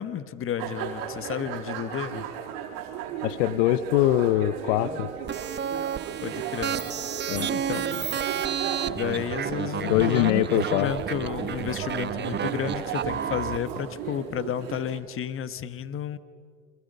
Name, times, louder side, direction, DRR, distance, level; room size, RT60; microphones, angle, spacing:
voice 1, 0.0-2.3 6.2-6.8 7.4-8.2 8.9-16.2, left 9 dB, 35° left, 14 dB, 1.3 m, -32 dB
sound 1, 0.6-15.0, right 8 dB, 60° right, 4.2 m, -35 dB
voice 2, 3.2-5.1 7.3-7.5 9.8-10.9, left 14 dB, 70° left, 15 dB, 0.9 m, -23 dB
sound 2, 5.3-13.6, right 8 dB, 30° right, 1.1 m, -31 dB
29.0 x 24.0 x 5.5 m, 2.3 s
hypercardioid pair, 85°, 37 cm